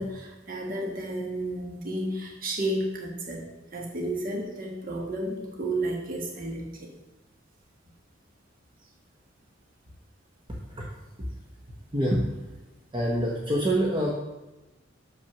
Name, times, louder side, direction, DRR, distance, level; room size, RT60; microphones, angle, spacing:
voice 1, 0.0-3.4 3.7-6.9, right 1 dB, 45° right, 0 dB, 1.3 m, -32 dB
voice 2, 10.5-10.9 11.9-12.6 12.9-14.1, right 1 dB, 25° right, -3 dB, 1.0 m, -26 dB
6.6 x 5.9 x 5.9 m, 1.0 s
head